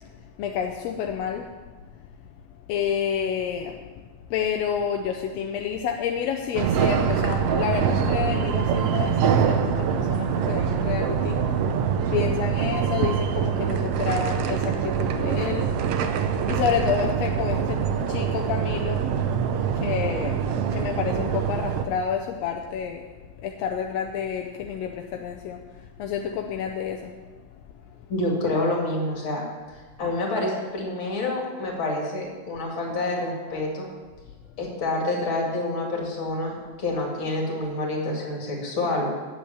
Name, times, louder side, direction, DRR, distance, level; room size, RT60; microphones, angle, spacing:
voice 1, 0.0-1.5 1.9-2.0 2.7-3.8 4.3-15.7 16.5-19.0 19.7-23.0 23.4-27.3, left 8 dB, 75° left, 3 dB, 1.6 m, -29 dB
sound 1, 6.5-21.8, right 7 dB, 85° right, 1.4 m, -24 dB
voice 2, 28.1-29.4 30.0-33.9 34.6-39.2, left 2 dB, 45° left, -1 dB, 2.7 m, -27 dB
9.4 x 7.7 x 6.9 m, 1.3 s
omnidirectional pair, 3.5 m